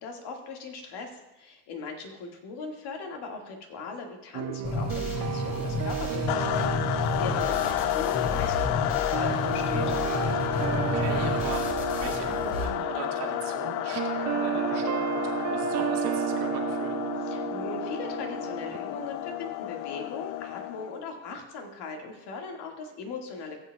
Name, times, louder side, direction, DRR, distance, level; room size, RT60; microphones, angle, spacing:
voice 1, 0.0-9.9 17.3-23.6, left 4 dB, 60° left, 2 dB, 2.0 m, -39 dB
sound 1, 4.3-18.8, right 10 dB, 40° right, 0.6 m, -33 dB
sound 2, 4.6-12.6, left 3 dB, 45° left, 3.1 m, -32 dB
sound 3, 6.3-21.0, left 15 dB, 75° left, 0.6 m, -31 dB
voice 2, 10.9-11.7 11.9-17.0, right 8 dB, 60° right, 1 dB, 1.8 m, -39 dB
15.5 x 8.2 x 2.3 m, 0.98 s
hypercardioid pair, 60°, 45 cm